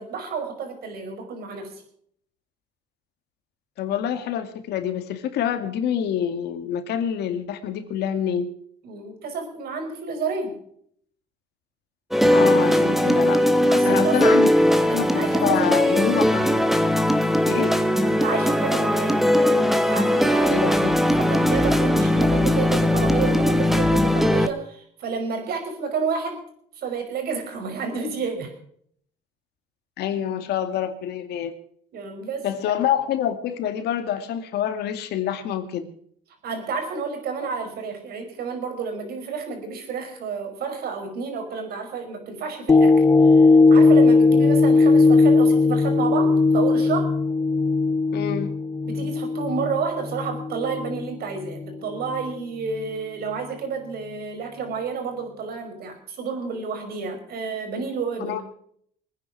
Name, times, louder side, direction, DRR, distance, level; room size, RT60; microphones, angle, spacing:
voice 1, 0.0-1.8 8.8-10.6 13.7-16.1 18.0-20.6 21.2-26.4 26.8-28.5 31.9-32.5 36.4-47.1 48.9-58.4, right 5 dB, 65° right, 5 dB, 5.3 m, -30 dB
voice 2, 3.8-8.5 12.3-13.4 13.8-14.5 14.9-16.4 17.5-17.7 20.5-21.0 30.0-31.6 32.4-35.9 48.1-48.5 58.2-58.4, left 9 dB, 75° left, 8 dB, 2.3 m, -26 dB
sound 1, 12.1-24.5, left 1 dB, ahead, 1.4 m, -19 dB
sound 2, 42.7-51.1 51.6-51.7, left 3 dB, 20° left, 0.6 m, -18 dB
24.0 x 9.8 x 4.8 m, 0.63 s
cardioid pair, 110°, 17 cm